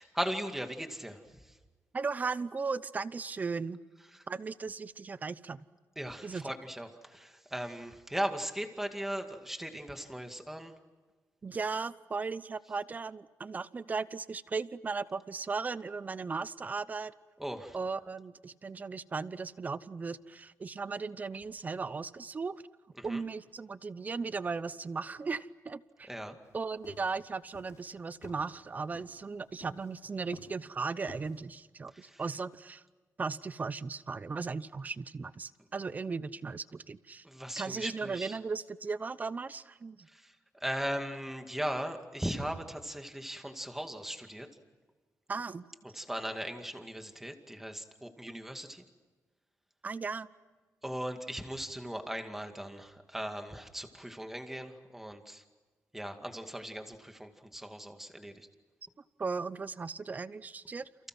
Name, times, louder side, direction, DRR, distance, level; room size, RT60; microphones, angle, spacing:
voice 1, 0.0-1.6 4.1-4.2 6.0-10.7 17.4-17.8 23.0-23.2 26.1-26.4 31.9-32.2 37.2-38.4 40.1-40.4 40.6-44.5 45.9-48.8 50.8-55.4 55.9-58.5, right 1 dB, 5° right, 5 dB, 2.2 m, -38 dB
voice 2, 1.9-3.8 4.3-5.6 6.2-6.4 11.4-17.1 17.7-22.5 23.0-26.1 26.5-32.8 33.2-37.2 37.6-40.1 45.3-45.7 48.3-48.4 49.8-50.3 59.2-60.8, right 4 dB, 25° right, 16 dB, 0.8 m, -37 dB
sound 1, 26.4-31.4, left 5 dB, 60° left, 6.2 m, -53 dB
30.0 x 29.5 x 6.1 m, 1.3 s
wide cardioid pair, 160°, 6 cm